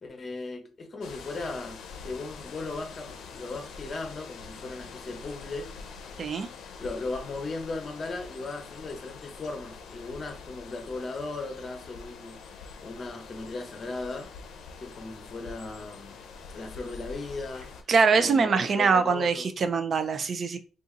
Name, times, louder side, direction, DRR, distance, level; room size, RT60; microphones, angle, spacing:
voice 1, 0.0-5.7 6.8-12.4 12.8-14.3 14.8-16.2 16.5-17.7 18.1-19.5, left 3 dB, 40° left, 0.8 m, -37 dB
sound 1, 1.0-17.8, left 5 dB, 75° left, 0.5 m, -45 dB
voice 2, 6.2-6.5 17.9-20.6, right 5 dB, 50° right, 0.4 m, -23 dB
2.7 x 2.4 x 3.8 m
cardioid pair, 90°, 0 cm